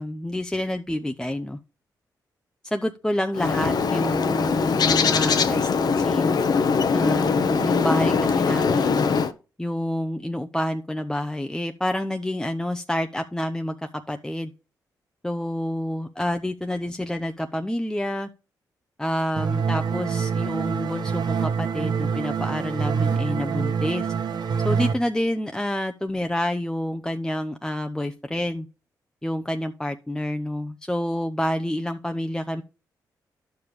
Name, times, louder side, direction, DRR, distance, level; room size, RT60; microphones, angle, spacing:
voice 1, 0.0-1.6 2.6-6.4 6.9-9.2 9.6-14.5 15.2-18.3 19.0-24.1 24.6-28.7 29.2-32.6, left 1 dB, 10° left, 6 dB, 0.7 m, -28 dB
Bird, 3.3-9.3, left 5 dB, 65° left, 0.9 m, -22 dB
sound 1, 19.4-24.9, right 6 dB, 70° right, 1.3 m, -25 dB
10.5 x 7.0 x 3.2 m, 0.34 s
cardioid pair, 65°, 8 cm